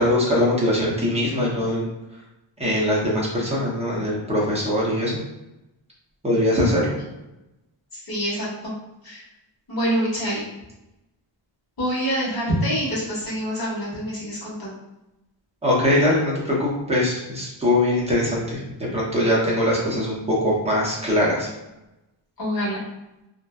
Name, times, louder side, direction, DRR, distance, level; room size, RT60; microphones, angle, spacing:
voice 1, 0.0-1.9 2.6-5.2 6.2-7.0 15.6-18.6 18.9-21.5, left 1 dB, 15° right, -6 dB, 0.6 m, -22 dB
voice 2, 7.9-8.7 9.0-9.2 9.7-10.4 11.8-14.7 22.4-22.8, equal, 50° left, -7 dB, 1.2 m, -26 dB
2.6 x 2.1 x 2.2 m, 0.94 s
wide cardioid pair, 165°, 48 cm